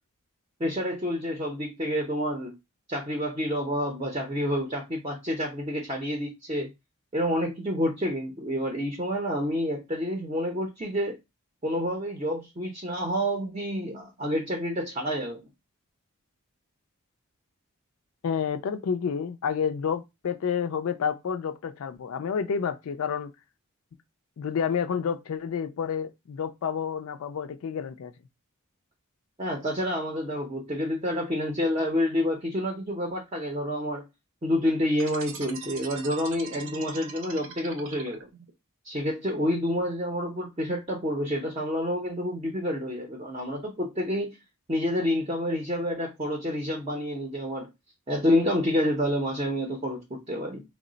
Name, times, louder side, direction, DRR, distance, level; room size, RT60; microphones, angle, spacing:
voice 1, 0.6-2.5 2.9-6.7 7.1-11.2 11.6-15.5 29.4-34.1 34.4-38.3 38.8-44.4 44.7-47.7 48.1-50.6, equal, 25° right, 0.6 m, -28 dB
voice 2, 18.2-23.3 24.4-28.1, left 7 dB, 70° left, 0.4 m, -29 dB
sound 1, 34.9-38.5, right 5 dB, 65° right, 0.7 m, -42 dB
3.0 x 2.1 x 3.8 m
head